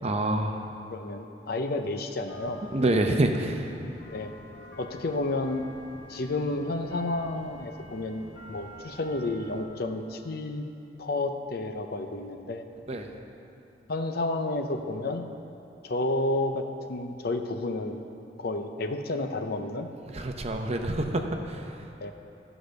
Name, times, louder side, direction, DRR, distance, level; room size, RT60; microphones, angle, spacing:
voice 1, 0.0-0.6 2.7-3.7 12.9-13.1 20.0-21.8, right 1 dB, 35° right, 4 dB, 0.7 m, -27 dB
voice 2, 0.9-2.6 4.1-4.3 4.8-5.6 6.1-10.7 11.0-12.6 13.9-15.2 15.8-18.0 18.4-19.9 22.0-22.1, left 2 dB, 60° left, 6 dB, 0.6 m, -31 dB
sound 1, 2.3-9.6, equal, 80° left, 1.5 m, -48 dB
14.0 x 5.0 x 6.4 m, 3.0 s
head